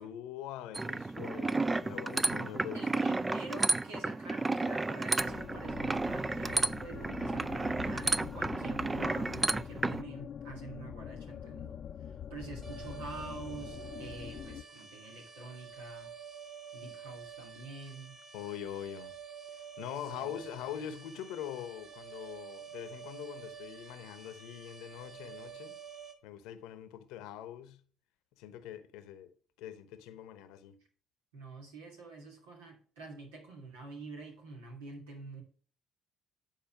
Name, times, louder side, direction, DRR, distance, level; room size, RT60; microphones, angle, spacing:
voice 1, 0.0-3.1 18.3-19.1 19.5-25.7 26.2-27.8 28.3-30.8, left 10 dB, 75° left, 0.9 m, -43 dB
sound 1, 0.7-10.0, right 3 dB, 20° right, 0.4 m, -32 dB
voice 2, 2.7-11.8 12.1-16.1 16.7-18.2 20.1-20.3 20.7-20.8 31.3-35.4, right 2 dB, 85° right, 2.7 m, -46 dB
sound 2, 5.2-14.6, left 8 dB, 55° left, 0.5 m, -44 dB
sound 3, 12.6-26.1, right 7 dB, 45° right, 3.2 m, -49 dB
9.3 x 4.4 x 5.9 m
hypercardioid pair, 55°, 0 cm